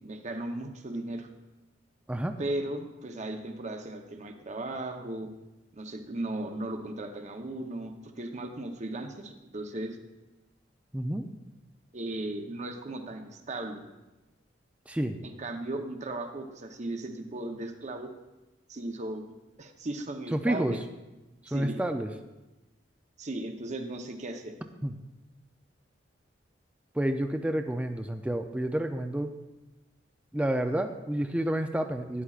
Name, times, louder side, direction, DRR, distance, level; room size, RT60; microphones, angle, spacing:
voice 1, 0.0-1.3 2.4-5.3 5.7-10.0 11.9-13.8 15.2-18.1 18.7-19.2 19.6-20.8 21.5-21.8 23.2-24.5, right 2 dB, 40° right, 5 dB, 0.8 m, -36 dB
voice 2, 10.9-11.3 14.9-15.2 20.3-20.7 21.4-22.1 24.8-24.9 26.9-29.3 30.3-32.2, right 1 dB, 5° right, 6 dB, 0.4 m, -29 dB
12.5 x 10.0 x 2.4 m, 1.1 s
head